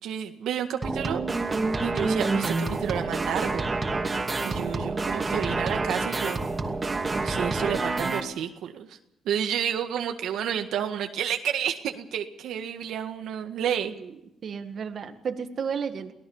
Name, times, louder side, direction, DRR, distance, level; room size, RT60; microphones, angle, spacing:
voice 1, 0.0-1.2 1.8-3.7 4.4-6.4 7.2-9.0 9.2-13.9, right 9 dB, 80° right, 5 dB, 1.8 m, -30 dB
sound 1, 0.8-8.2, right 3 dB, 25° right, 2.7 m, -28 dB
voice 2, 4.5-5.4 14.4-16.1, right 6 dB, 55° right, 7 dB, 1.8 m, -34 dB
24.0 x 17.5 x 7.2 m, 0.84 s
cardioid pair, 90°, 0 cm